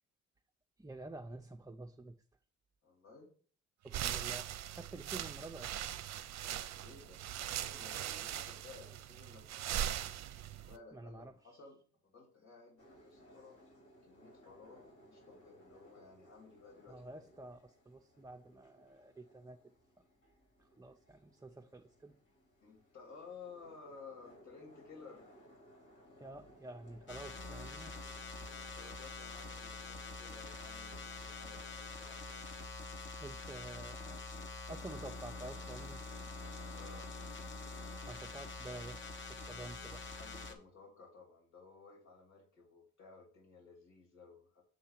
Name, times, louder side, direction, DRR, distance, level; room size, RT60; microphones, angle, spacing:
voice 1, 0.8-2.2 3.8-5.8 8.8-8.9 10.9-11.6 16.9-19.6 20.6-22.2 26.2-28.0 33.2-34.2 34.5-36.0 38.0-40.0, right 2 dB, 10° right, 3 dB, 0.5 m, -49 dB
voice 2, 2.8-3.3 6.7-7.2 7.5-13.6 14.0-17.3 22.6-25.4 28.5-33.0 36.7-37.1 39.9-44.6, left 4 dB, 65° left, -2 dB, 3.2 m, -56 dB
sound 1, 3.9-10.8, right 11 dB, 60° right, 0.6 m, -40 dB
sound 2, 12.8-29.0, equal, 85° left, 3.7 m, -63 dB
sound 3, 27.1-40.5, left 3 dB, 40° left, 1.2 m, -46 dB
7.5 x 2.8 x 5.8 m, 0.43 s
cardioid pair, 90°, 30 cm